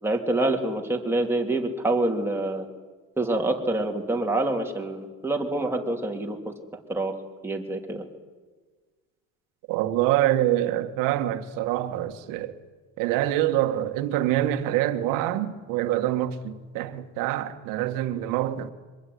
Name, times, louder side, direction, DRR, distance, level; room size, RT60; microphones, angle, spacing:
voice 1, 0.0-2.6 3.2-6.5 6.9-7.1 7.4-8.0, right 2 dB, 5° right, 3.2 m, -26 dB
voice 2, 9.7-12.6 13.0-18.7, right 13 dB, 70° right, 2.0 m, -25 dB
24.5 x 21.5 x 9.6 m
cardioid pair, 135°, 33 cm